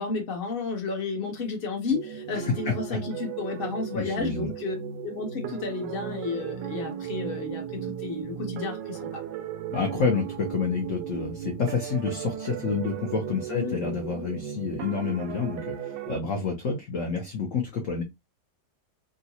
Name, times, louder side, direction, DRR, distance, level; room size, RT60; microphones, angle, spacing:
voice 1, 0.0-4.8 5.0-9.2 13.5-13.7, left 4 dB, 40° left, 1.0 m, -32 dB
sound 1, 1.9-16.2, right 9 dB, 80° right, 1.2 m, -36 dB
voice 2, 2.4-3.0 3.9-4.5 9.7-18.0, left 5 dB, 60° left, 0.9 m, -29 dB
3.7 x 2.2 x 2.7 m
omnidirectional pair, 2.0 m